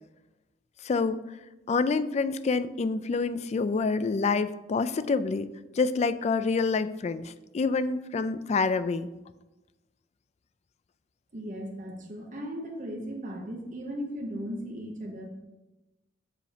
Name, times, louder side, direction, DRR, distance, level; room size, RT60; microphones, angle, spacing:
voice 1, 0.8-1.2 1.7-5.5 5.7-9.1, left 4 dB, 35° left, 14 dB, 0.3 m, -27 dB
voice 2, 11.3-15.3, equal, 40° right, 1 dB, 0.9 m, -37 dB
6.7 x 5.1 x 5.0 m, 1.0 s
head